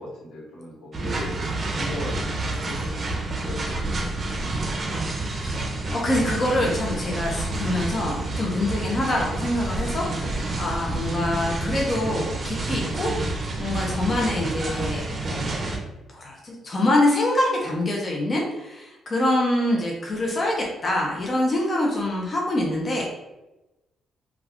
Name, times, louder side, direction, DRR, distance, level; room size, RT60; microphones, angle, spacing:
voice 1, 0.0-2.9 3.3-3.8 4.1-4.8, left 1 dB, 85° left, -5 dB, 1.1 m, -38 dB
sound 1, 0.9-15.8, right 2 dB, 40° right, 0.6 m, -29 dB
voice 2, 5.4-13.1 13.6-15.4 16.1-23.0, left 1 dB, 35° left, -2 dB, 0.6 m, -25 dB
2.3 x 2.3 x 3.4 m, 1.0 s
cardioid pair, 90°, 0 cm